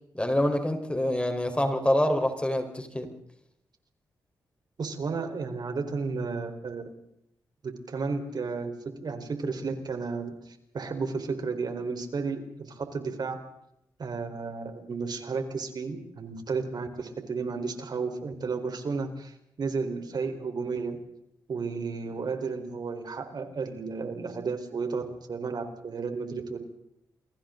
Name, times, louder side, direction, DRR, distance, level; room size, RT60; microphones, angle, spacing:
voice 1, 0.1-3.1, left 1 dB, 15° left, 5 dB, 4.5 m, -26 dB
voice 2, 4.8-6.9 7.6-13.4 14.0-21.0 21.5-26.6, right 4 dB, 60° right, 6 dB, 4.4 m, -33 dB
28.5 x 24.0 x 4.0 m, 0.77 s
cardioid pair, 55°, 8 cm